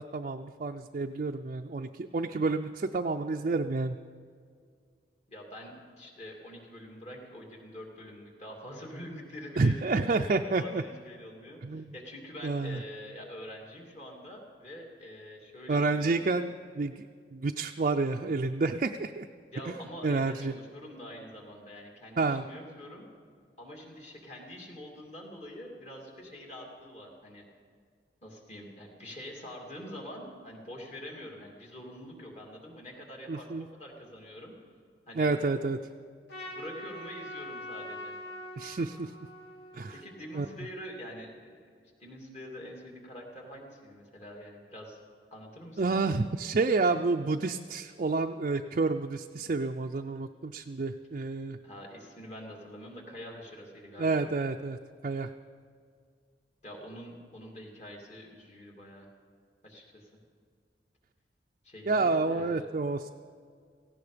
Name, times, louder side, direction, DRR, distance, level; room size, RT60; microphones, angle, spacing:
voice 1, 0.0-4.0 9.6-10.8 11.6-11.9 12.4-12.8 15.7-16.9 17.3-19.3 19.7-19.8 20.0-20.5 22.2-22.4 33.3-33.7 35.2-35.8 38.6-39.1 39.7-39.9 40.3-40.5 45.8-51.6 54.0-54.8 55.0-55.3 61.9-63.1, right 3 dB, 45° right, 4 dB, 0.4 m, -29 dB
voice 2, 5.3-16.2 19.5-23.1 23.6-27.4 28.2-34.5 35.1-35.3 36.4-38.2 39.9-41.6 42.0-45.0 45.3-45.8 51.6-54.3 56.6-59.1 59.6-60.1 61.6-62.7, equal, 40° left, 0 dB, 2.9 m, -45 dB
Trumpet, 36.3-40.7, left 1 dB, 80° left, 3.3 m, -44 dB
17.5 x 16.0 x 5.1 m, 2.1 s
head